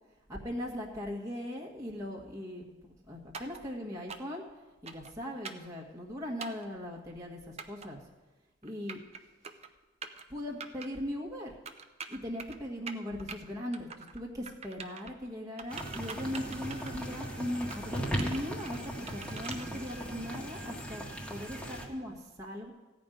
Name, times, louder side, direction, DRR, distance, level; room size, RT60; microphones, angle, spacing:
voice 1, 0.3-4.5 4.8-8.0 8.6-9.0 10.3-11.5 12.1-21.0 21.3-22.7, left 1 dB, 15° right, -4 dB, 1.5 m, -39 dB
sound 1, 3.3-3.6 4.1-4.4 4.9-5.1 5.4-5.7 6.4-6.7 7.6-7.9 8.6-9.2 9.4-9.7 10.0-10.2 10.6-10.9 11.7-12.6 12.9-13.4 13.7-14.2 14.5-15.1 15.6-17.2 17.5-17.8 18.2-19.7, right 5 dB, 35° right, 0.7 m, -44 dB
sound 2, 15.7-21.9, right 1 dB, 5° left, 1.6 m, -38 dB
15.5 x 5.3 x 9.1 m, 1.2 s
head